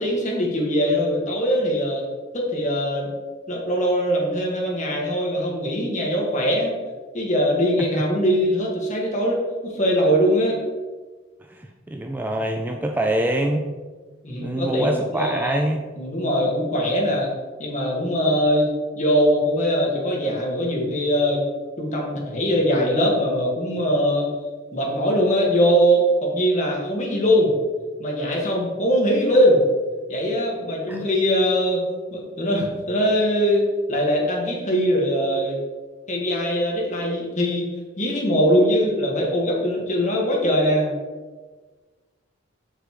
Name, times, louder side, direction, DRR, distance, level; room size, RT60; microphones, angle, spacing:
voice 1, 0.0-2.0 2.3-3.1 3.5-6.7 7.1-10.6 14.2-15.6 16.0-17.3 17.6-18.7 18.9-21.4 21.8-24.2 24.7-27.5 28.0-29.6 30.1-31.8 32.1-35.6 36.1-37.6 38.0-40.9, equal, 40° left, -2 dB, 1.6 m, -21 dB
voice 2, 11.5-13.7 14.4-15.9 30.9-31.0, right 1 dB, 10° right, 3 dB, 0.3 m, -25 dB
6.9 x 6.6 x 3.0 m, 1.4 s
head